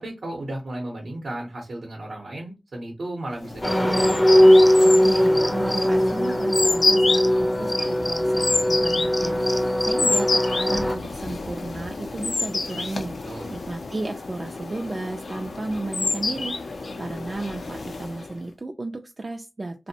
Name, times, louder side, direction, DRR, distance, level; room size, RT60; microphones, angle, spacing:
voice 1, 0.0-4.2 13.2-13.5, right 1 dB, 85° right, -1 dB, 0.7 m, -34 dB
sound 1, 3.4-18.4, left 3 dB, 90° left, 0.4 m, -29 dB
sound 2, 3.6-11.0, equal, 20° left, 0.5 m, -19 dB
voice 2, 5.0-19.9, right 2 dB, 45° right, 3 dB, 0.3 m, -34 dB
2.5 x 2.0 x 2.7 m, 0.25 s
wide cardioid pair, 55°, 0 cm